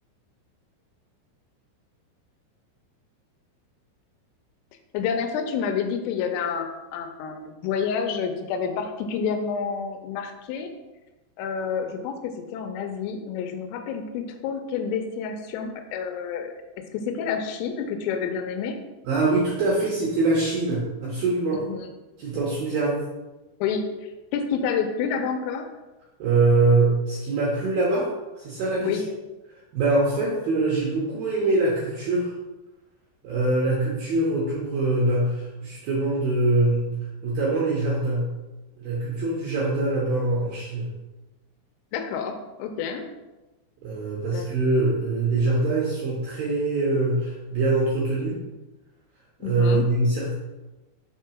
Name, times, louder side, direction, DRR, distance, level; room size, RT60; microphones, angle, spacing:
voice 1, 4.9-10.7 11.4-16.5 16.9-18.8 21.6-21.9 23.6-25.7 28.8-29.0 41.9-43.1 44.3-44.5 49.4-49.9, left 6 dB, 85° left, 5 dB, 3.3 m, -29 dB
voice 2, 19.0-21.6 22.2-23.0 26.2-28.1 28.4-29.0 29.7-32.3 33.2-37.0 37.2-38.3 38.8-40.9 43.8-48.4 49.4-50.3, right 2 dB, 70° right, -5 dB, 2.2 m, -23 dB
6.7 x 4.7 x 5.8 m, 1.1 s
omnidirectional pair, 6.0 m